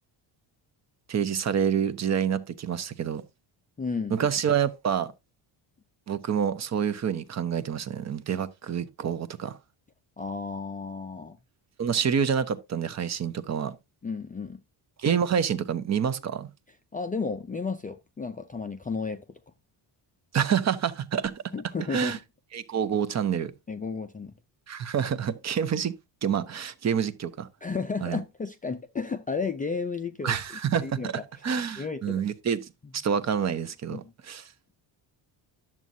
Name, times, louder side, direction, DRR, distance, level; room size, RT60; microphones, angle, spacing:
voice 1, 1.1-3.2 4.1-5.1 6.1-9.6 11.8-13.8 15.0-16.5 20.3-21.4 21.9-22.2 22.5-23.5 24.7-25.9 26.2-27.5 28.0-28.2 30.2-31.1 31.4-34.5, right 8 dB, 35° right, 0.8 m, -27 dB
voice 2, 3.8-4.3 10.2-11.4 14.0-14.6 16.9-19.4 21.5-22.2 23.7-24.3 27.6-30.4 30.8-31.1 31.8-32.3 33.9-34.1, left 4 dB, 20° left, 0.4 m, -33 dB
10.5 x 7.4 x 2.7 m
cardioid pair, 135°, 47 cm